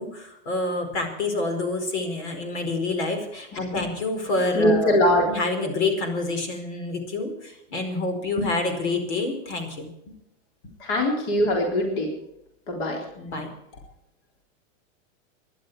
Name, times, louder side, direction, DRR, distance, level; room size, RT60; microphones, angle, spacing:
voice 1, 0.0-5.0 5.3-9.9 13.1-13.5, left 2 dB, 60° left, 6 dB, 4.7 m, -27 dB
voice 2, 4.5-5.3 10.8-12.1 12.7-13.0, left 1 dB, 40° left, 0 dB, 3.9 m, -22 dB
23.0 x 11.5 x 4.8 m, 0.82 s
supercardioid pair, 175°, 38 cm